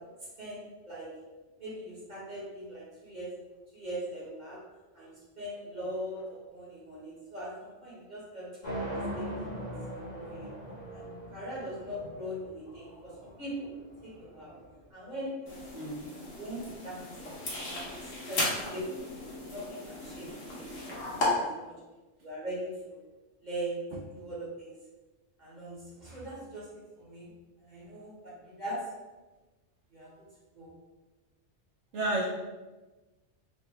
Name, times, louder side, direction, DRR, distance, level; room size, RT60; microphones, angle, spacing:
voice 1, 0.4-1.1 1.6-3.3 3.7-4.6 4.9-8.5 9.1-9.7 10.1-10.5 10.9-13.7 14.0-14.6 14.9-15.5 16.4-17.3 17.7-17.9 18.3-18.4 18.7-19.0 19.5-21.0 21.3-21.8 22.2-23.0 23.4-23.8 24.1-24.8 25.4-27.3 27.6-28.8 29.9-30.1 30.5-30.7, right 1 dB, 40° right, -7 dB, 1.2 m, -40 dB
sound 1, 8.6-14.7, right 1 dB, 40° left, 1.2 m, -40 dB
sound 2, 15.5-21.3, left 2 dB, 90° left, 1.4 m, -36 dB
voice 2, 31.9-32.3, right 1 dB, 75° right, -4 dB, 1.0 m, -31 dB
4.5 x 2.1 x 3.3 m, 1.2 s
omnidirectional pair, 1.2 m